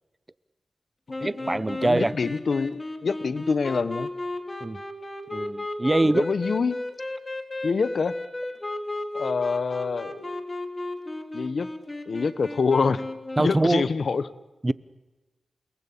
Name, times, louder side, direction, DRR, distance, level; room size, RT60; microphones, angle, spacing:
sound 1, 1.1-13.7, left 2 dB, 25° left, 3.3 m, -34 dB
voice 1, 1.2-2.1 4.6-4.8 5.3-6.2 13.4-13.9 14.6-14.7, right 2 dB, 25° right, 17 dB, 0.8 m, -23 dB
voice 2, 1.8-4.1 6.0-6.8 7.6-8.1 9.1-10.3 11.3-11.7 12.1-13.0 13.4-14.2, left 5 dB, 70° left, 15 dB, 1.1 m, -26 dB
29.5 x 19.5 x 8.7 m, 1.2 s
wide cardioid pair, 80°, 0 cm